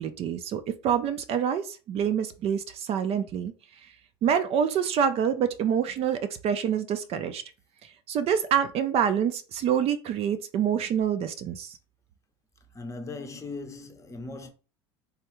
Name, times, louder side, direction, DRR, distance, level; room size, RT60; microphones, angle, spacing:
voice 1, 0.0-3.5 4.2-7.4 8.1-11.8, right 8 dB, 45° right, 0.5 m, -26 dB
voice 2, 12.7-14.5, left 3 dB, 20° left, 0.7 m, -38 dB
3.5 x 2.3 x 3.0 m
hypercardioid pair, 85°, 14 cm